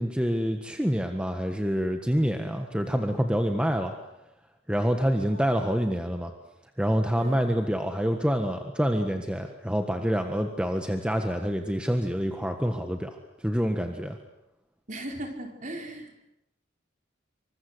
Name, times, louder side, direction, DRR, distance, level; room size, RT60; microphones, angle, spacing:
voice 1, 0.0-3.9 4.7-6.3 6.8-14.2, equal, 5° right, 5 dB, 1.5 m, -27 dB
voice 2, 14.9-16.2, right 1 dB, 40° right, 3 dB, 4.7 m, -38 dB
27.5 x 25.0 x 8.1 m, 0.87 s
head